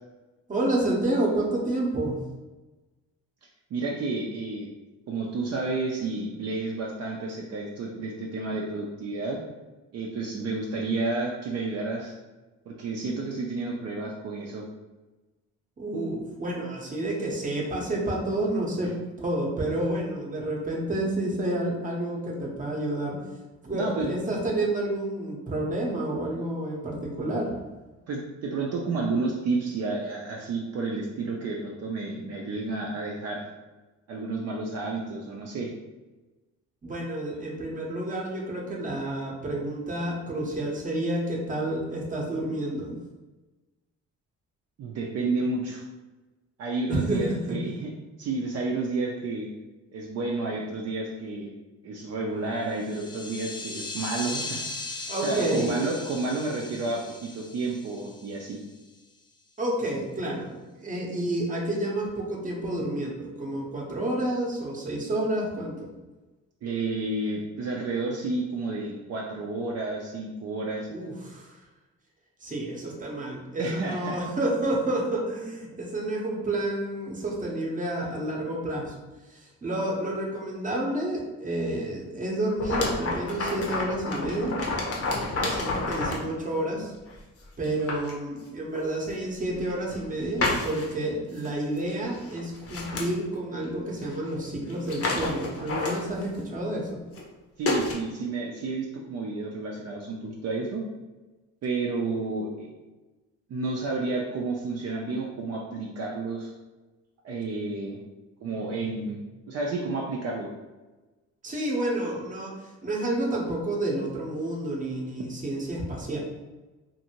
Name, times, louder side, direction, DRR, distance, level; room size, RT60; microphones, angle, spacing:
voice 1, 0.5-2.2 15.8-18.9 19.2-23.2 23.6-27.6 36.8-42.9 46.9-47.6 55.1-55.7 59.6-65.9 70.9-71.6 72.4-78.9 79.3-84.6 85.3-86.9 87.6-97.0 111.4-116.2, right 1 dB, 25° right, -1 dB, 0.8 m, -29 dB
voice 2, 3.7-4.7 5.1-9.4 9.9-12.1 12.7-14.6 18.8-18.9 23.7-24.2 28.1-33.4 34.1-35.7 44.8-45.8 46.6-47.9 48.2-49.5 49.9-51.5 51.8-54.6 55.2-58.6 66.6-70.9 73.6-74.2 97.6-100.8 101.6-102.7 103.5-106.5 107.2-108.0 108.4-110.5, right 3 dB, 55° right, -2 dB, 0.5 m, -31 dB
sound 1, 52.7-58.8, left 3 dB, 15° left, 0.4 m, -38 dB
sound 2, 82.6-86.3 87.1-87.2 87.6-88.1 88.8-88.9 89.6-90.1 90.4-91.0 91.4-91.5 91.8-91.9 92.2-93.1 94.0-94.1 94.4-94.5 94.7-96.4 97.1-97.3 97.7-97.9, left 2 dB, 50° left, 0.7 m, -29 dB
2.6 x 2.6 x 2.8 m, 1.2 s
cardioid pair, 90°, 30 cm